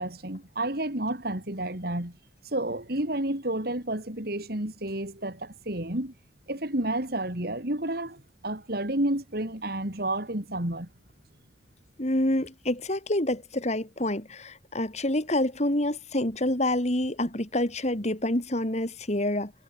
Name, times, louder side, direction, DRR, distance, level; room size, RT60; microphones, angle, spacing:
voice 1, 0.0-2.2 2.5-6.1 6.5-10.9, right 1 dB, 60° right, 3.6 m, -30 dB
voice 2, 12.0-19.5, left 1 dB, 40° left, 3.2 m, -27 dB
head